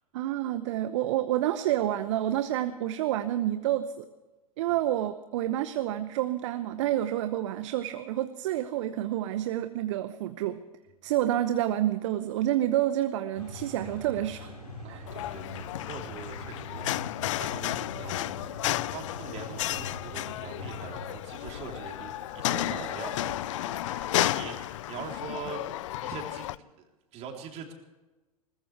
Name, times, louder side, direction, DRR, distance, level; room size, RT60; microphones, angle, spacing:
voice 1, 0.1-4.1 4.6-10.6 11.0-14.5 14.9-15.1, right 13 dB, 55° right, 11 dB, 0.9 m, -29 dB
sound 1, 13.3-24.7, left 2 dB, 85° left, 4.9 m, -44 dB
voice 2, 14.8-26.9 27.1-27.7, right 6 dB, 35° right, 2 dB, 3.7 m, -43 dB
sound 2, 15.1-26.6, left 15 dB, 55° left, 0.5 m, -33 dB
21.0 x 20.0 x 3.4 m, 1.1 s
figure-of-eight pair, 95°, 19 cm